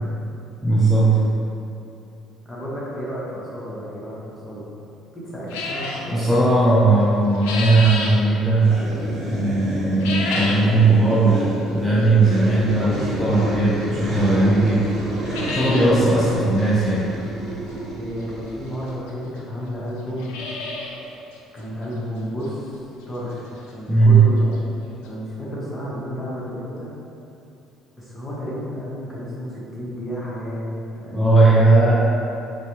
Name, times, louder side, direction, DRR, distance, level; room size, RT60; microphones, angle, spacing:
voice 1, 0.6-1.2 6.1-8.7 9.3-14.9 15.5-17.1 23.9-24.2 31.1-32.1, right 2 dB, ahead, -9 dB, 0.5 m, -17 dB
voice 2, 2.4-4.7 5.1-6.3 17.9-20.4 21.5-22.8 23.1-24.5 25.0-26.9 28.0-30.7 30.9-31.4, equal, 20° left, -7 dB, 1.1 m, -32 dB
sound 1, 5.5-6.1 7.0-8.2 9.9-10.7 11.1-11.2 12.0-12.1 13.8-13.9 14.3-14.4 14.7-14.8 15.1-15.9 16.2-16.3 16.6-16.7 18.2-18.3 19.1-19.2 19.4-19.5 20.0-21.0 21.3-21.4 21.9-22.0 22.4-22.5 24.3-24.4 24.5-24.6 25.1-25.2, left 3 dB, 90° left, 0.4 m, -29 dB
sound 2, 8.6-18.9, right 1 dB, 45° right, 1.0 m, -30 dB
4.0 x 2.2 x 3.0 m, 2.7 s
supercardioid pair, 80°, 0 cm